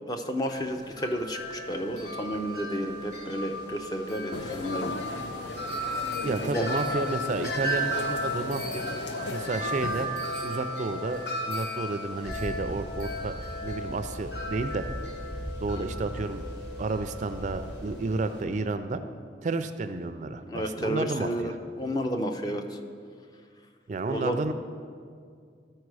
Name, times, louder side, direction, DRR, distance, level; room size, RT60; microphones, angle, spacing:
voice 1, 0.1-5.0 6.4-6.7 15.8-15.9 20.5-22.8 24.1-24.4, equal, 20° left, 5 dB, 0.5 m, -31 dB
Wind chime, 0.5-18.4, equal, 65° left, 1.4 m, -35 dB
sound 1, 4.3-10.1, left 2 dB, 85° left, 0.6 m, -37 dB
voice 2, 6.2-8.8 9.3-10.1 10.4-13.4 13.6-14.9 15.6-16.4 16.8-19.0 19.4-21.6 23.9-24.5, right 3 dB, 40° right, 10 dB, 0.3 m, -31 dB
sound 2, 12.2-18.6, right 1 dB, 40° left, 2.2 m, -39 dB
13.0 x 4.5 x 4.7 m, 2.2 s
head